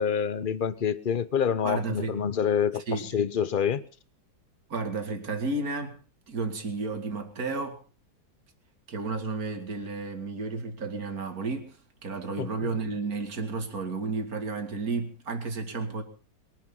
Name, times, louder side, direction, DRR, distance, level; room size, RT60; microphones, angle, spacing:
voice 1, 0.0-3.8 12.4-12.7, left 7 dB, 40° left, 0.8 m, -27 dB
voice 2, 1.6-2.2 2.7-3.2 4.7-6.0 6.3-7.8 8.9-11.8 12.0-16.0, right 3 dB, 55° right, 2.8 m, -32 dB
22.5 x 10.5 x 5.4 m
omnidirectional pair, 1.9 m